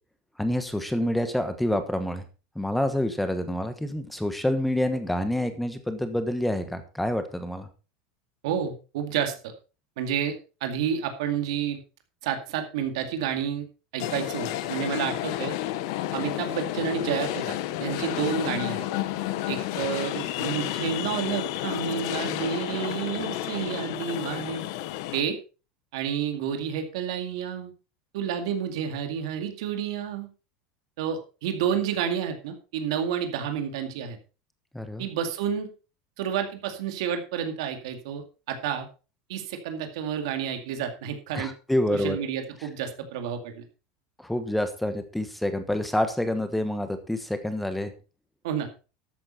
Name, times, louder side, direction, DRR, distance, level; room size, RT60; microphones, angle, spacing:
voice 1, 0.4-2.2 2.5-7.7 34.7-35.1 41.3-42.2 44.2-47.9, left 1 dB, ahead, 9 dB, 1.2 m, -27 dB
voice 2, 8.4-9.5 10.0-10.3 10.6-11.8 12.2-13.7 13.9-15.5 16.1-18.8 19.5-24.6 25.1-25.4 25.9-27.7 28.1-30.3 31.0-34.2 35.0-35.7 36.2-38.9 39.3-41.5 41.9-43.6 48.4-48.7, right 8 dB, 75° right, 6 dB, 2.2 m, -30 dB
sound 1, 14.0-25.2, left 14 dB, 60° left, 1.0 m, -31 dB
13.0 x 8.8 x 4.2 m, 0.33 s
supercardioid pair, 170°, 3 cm